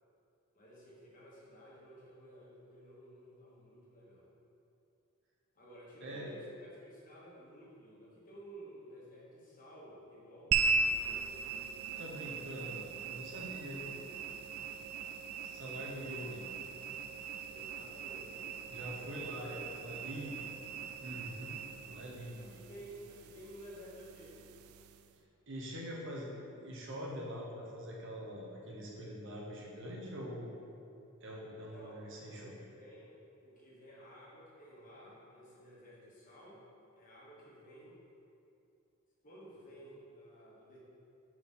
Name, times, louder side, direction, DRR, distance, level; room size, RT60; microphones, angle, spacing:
voice 1, 0.5-4.3 5.5-11.7 13.0-14.7 17.5-18.5 18.9-20.3 22.4-24.5 31.6-33.1 33.4-36.6 36.9-38.0 39.2-40.8, equal, 40° left, -6 dB, 1.4 m, -54 dB
voice 2, 6.0-6.3 12.0-13.8 15.4-16.4 18.7-20.3 21.0-21.6 21.9-22.4 25.5-30.6 31.2-32.5, equal, 60° right, -3 dB, 1.0 m, -44 dB
sound 1, 10.5-25.1, right 4 dB, 80° right, 0.3 m, -39 dB
4.8 x 3.9 x 5.5 m, 2.7 s
head